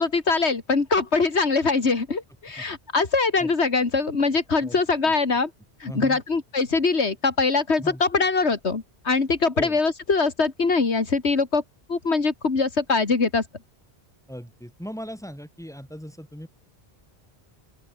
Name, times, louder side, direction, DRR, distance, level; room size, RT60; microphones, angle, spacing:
voice 1, 0.0-5.5 5.8-11.6 11.9-13.4, left 4 dB, 90° left, 2.6 m, -23 dB
voice 2, 5.8-6.2 7.8-8.0 9.6-9.8 14.3-16.5, equal, 5° left, 6.0 m, -38 dB
open air
omnidirectional pair, 1.1 m